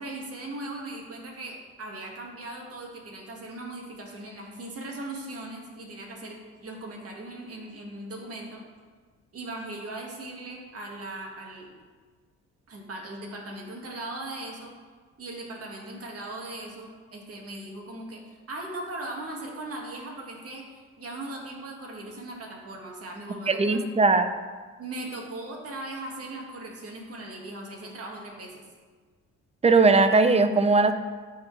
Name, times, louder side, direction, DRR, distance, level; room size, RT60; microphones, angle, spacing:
voice 1, 0.0-8.6 9.3-11.7 12.7-14.7 15.2-18.2 18.5-24.1 24.8-28.6, right 2 dB, 50° right, -1 dB, 1.8 m, -39 dB
voice 2, 23.5-24.3 29.6-30.9, right 3 dB, 20° right, 9 dB, 0.6 m, -19 dB
12.5 x 4.4 x 3.3 m, 1.4 s
cardioid pair, 90°, 30 cm